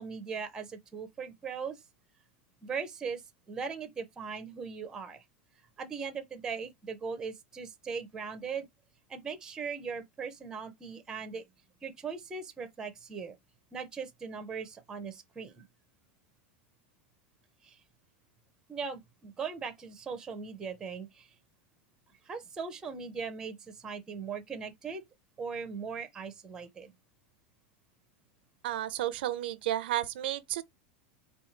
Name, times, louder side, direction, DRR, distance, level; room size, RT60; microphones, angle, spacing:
voice 1, 0.0-1.8 2.6-3.2 3.5-5.2 5.8-8.7 9.1-11.4 11.8-13.4 13.7-15.7 17.6-17.8 18.7-21.3 22.2-25.0 25.4-26.9, right 5 dB, 10° right, 0.5 m, -39 dB
voice 2, 28.6-30.6, right 13 dB, 70° right, 0.4 m, -32 dB
4.3 x 2.3 x 3.9 m
supercardioid pair, 170°, 6 cm